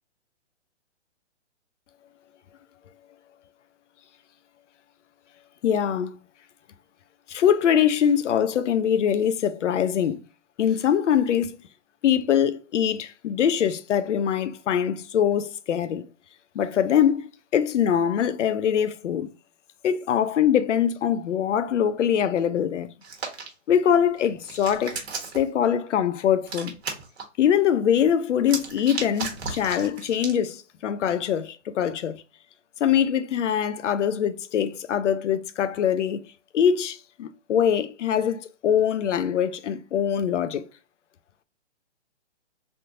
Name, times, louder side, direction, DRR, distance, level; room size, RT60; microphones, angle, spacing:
voice 1, 5.6-6.1 7.3-10.2 10.6-11.6 12.0-16.1 16.5-19.3 19.8-22.9 23.7-25.0 25.3-26.7 27.4-32.2 32.8-40.6, left 9 dB, 80° left, 0.5 m, -23 dB
Hands, 23.0-23.5 24.2-25.5 26.4-27.2 28.4-30.4, right 4 dB, 60° right, 1.1 m, -34 dB
3.5 x 2.7 x 2.4 m
hypercardioid pair, 175°, 35 cm